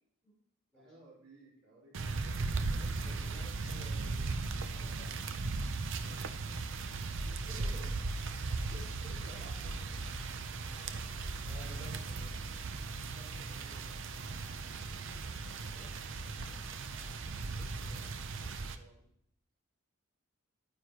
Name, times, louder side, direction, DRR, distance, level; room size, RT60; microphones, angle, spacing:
voice 1, 0.7-3.8 5.0-5.2 6.1-6.6 7.2-8.0 8.7-10.1 11.8-12.1 13.1-14.0 15.2-19.1, right 1 dB, 85° right, -6 dB, 4.1 m, -57 dB
sound 1, 1.9-18.8, right 3 dB, 60° right, 0.6 m, -37 dB
sound 2, 2.5-17.5, left 1 dB, 45° left, 1.5 m, -61 dB
voice 2, 2.8-5.4 11.4-12.3 14.4-15.1, equal, 5° left, -7 dB, 4.1 m, -56 dB
10.5 x 9.4 x 3.0 m, 0.72 s
head